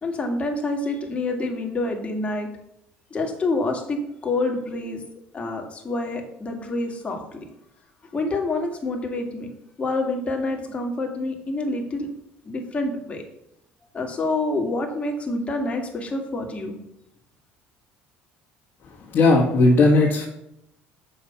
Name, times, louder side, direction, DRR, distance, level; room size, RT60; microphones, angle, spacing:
voice 1, 0.0-2.5 3.1-5.0 5.3-7.4 8.1-9.5 9.8-12.1 12.4-13.2 13.9-16.8, left 2 dB, 25° left, 2 dB, 2.1 m, -27 dB
voice 2, 19.1-20.3, left 2 dB, 50° left, -3 dB, 1.9 m, -16 dB
7.1 x 5.7 x 5.7 m, 0.77 s
supercardioid pair, 95°, 5 cm